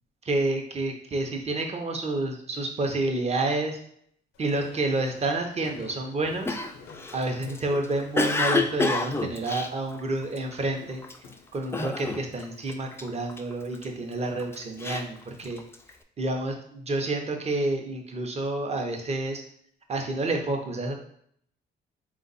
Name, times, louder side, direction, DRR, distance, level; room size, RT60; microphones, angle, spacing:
voice 1, 0.2-3.8 4.4-6.5 7.1-11.0 11.5-15.6 16.2-19.4 19.9-20.9, right 2 dB, 30° right, 3 dB, 0.8 m, -29 dB
Walk footsteps, 4.3-11.6, left 5 dB, 85° left, 0.6 m, -49 dB
Cough, 6.5-10.5 11.0-11.3 11.7-12.4 12.7-13.9 14.4-15.9, left 3 dB, 10° left, 0.3 m, -29 dB
3.9 x 2.4 x 4.0 m, 0.66 s
cardioid pair, 90°, 20 cm